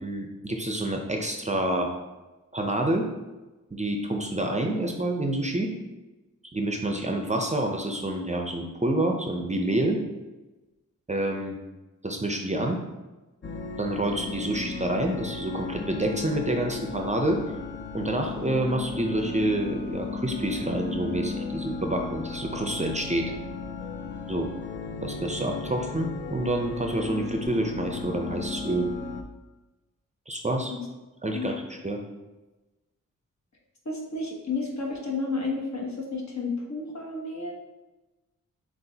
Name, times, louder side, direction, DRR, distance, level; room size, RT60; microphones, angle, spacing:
voice 1, 0.0-1.9 2.5-3.1 3.7-5.7 6.5-10.0 11.1-11.6 12.0-12.8 13.8-17.6 17.9-23.3 24.3-24.5 25.0-28.9 30.3-30.7 31.2-32.0, right 1 dB, 20° right, 2 dB, 0.5 m, -28 dB
sound 1, 13.4-29.2, left 4 dB, 40° left, 0.5 m, -35 dB
voice 2, 33.8-37.5, left 3 dB, 60° left, -1 dB, 1.2 m, -31 dB
7.5 x 2.5 x 2.8 m, 1.1 s
wide cardioid pair, 75°, 31 cm